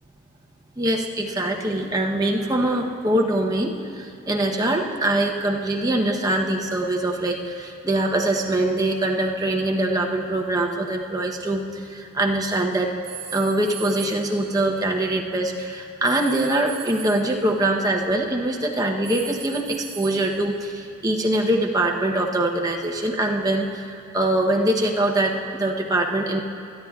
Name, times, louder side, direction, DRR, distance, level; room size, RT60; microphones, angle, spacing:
voice 1, 0.8-12.9 13.3-26.4, right 1 dB, 20° right, 0 dB, 0.8 m, -23 dB
sound 1, 13.0-15.3 16.0-17.5 19.0-20.8, right 9 dB, 50° right, 2.0 m, -39 dB
22.5 x 10.0 x 2.4 m, 2.4 s
head